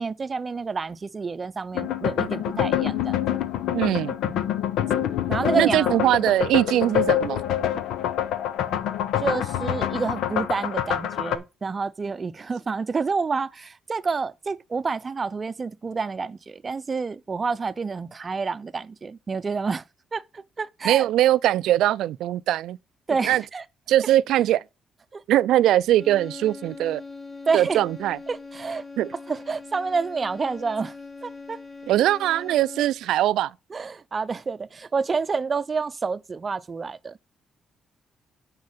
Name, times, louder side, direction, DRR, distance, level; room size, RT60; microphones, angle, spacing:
voice 1, 0.0-3.3 5.3-6.0 9.2-19.8 20.1-21.0 23.1-23.6 25.1-25.2 27.5-27.8 28.3-28.8 29.3-30.9 31.2-31.6 33.7-37.2, right 4 dB, 35° right, 0.6 m, -28 dB
sound 1, 1.7-11.4, left 10 dB, 85° left, 0.8 m, -26 dB
voice 2, 3.7-4.3 5.6-7.4 20.8-22.8 23.2-23.4 23.9-24.6 25.3-27.0 27.5-28.2 29.0-29.1 31.9-33.5, right 13 dB, 85° right, 0.4 m, -21 dB
sound 2, 25.9-33.1, left 4 dB, 40° left, 5.3 m, -41 dB
9.5 x 4.6 x 5.7 m
cardioid pair, 90°, 0 cm